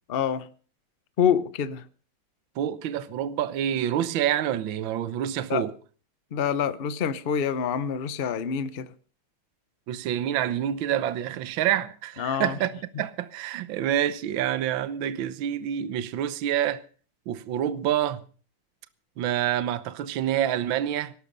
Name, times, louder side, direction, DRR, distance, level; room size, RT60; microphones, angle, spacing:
voice 1, 0.1-0.5 1.2-1.8 5.5-5.6 6.3-8.9 12.2-12.6, left 8 dB, 80° left, 0.5 m, -26 dB
voice 2, 2.6-5.7 9.9-16.8 17.3-18.2 19.2-21.1, right 11 dB, 70° right, 1.6 m, -27 dB
18.0 x 12.0 x 5.4 m
omnidirectional pair, 2.4 m